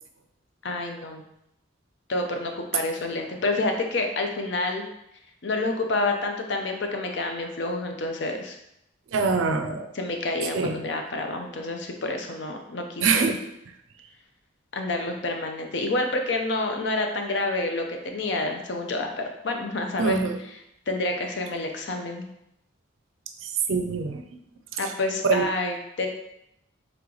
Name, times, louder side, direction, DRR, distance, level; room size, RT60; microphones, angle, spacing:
voice 1, 0.6-1.2 2.1-4.9 5.4-8.6 9.9-13.3 14.7-20.2 20.5-20.6 20.9-22.2 24.8-26.1, left 2 dB, 60° left, 4 dB, 0.6 m, -28 dB
voice 2, 9.1-9.9 10.5-10.8 13.0-13.4 20.0-20.4 23.4-24.2 25.3-25.4, right 4 dB, 80° right, 6 dB, 0.5 m, -24 dB
3.4 x 3.1 x 3.8 m, 0.80 s
head